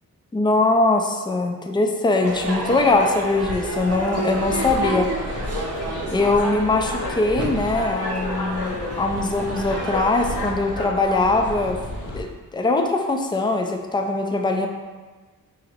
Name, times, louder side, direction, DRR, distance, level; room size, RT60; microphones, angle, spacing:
voice 1, 0.3-5.1 6.1-11.8 12.1-14.7, left 2 dB, 10° left, 3 dB, 0.4 m, -21 dB
Crowd / Fireworks, 2.2-10.5, right 2 dB, 40° right, 0.7 m, -31 dB
sound 1, 4.4-12.2, left 1 dB, 75° left, 0.8 m, -31 dB
2.9 x 2.6 x 4.3 m, 1.3 s
cardioid pair, 55°, 38 cm